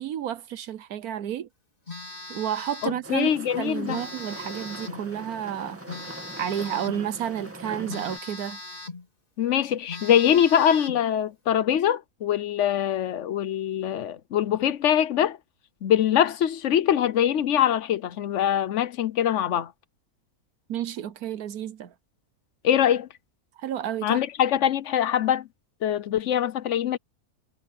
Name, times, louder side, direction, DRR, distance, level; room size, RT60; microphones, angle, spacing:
voice 1, 0.0-1.5 2.3-3.3 3.6-5.8 6.4-8.6 20.7-21.9 23.6-24.2, right 10 dB, 75° right, 1.3 m, -31 dB
Telephone, 1.9-3.0 3.9-5.1 5.9-7.1 7.9-9.1 9.5-9.6 9.9-11.1, left 2 dB, 35° left, 4.0 m, -39 dB
voice 2, 2.8-4.0 9.4-15.4 15.8-19.7 22.6-23.1 24.0-25.5 25.8-27.0, left 10 dB, 60° left, 1.0 m, -23 dB
sound 1, 3.0-8.2, right 1 dB, 10° right, 2.2 m, -42 dB
omnidirectional pair, 1.6 m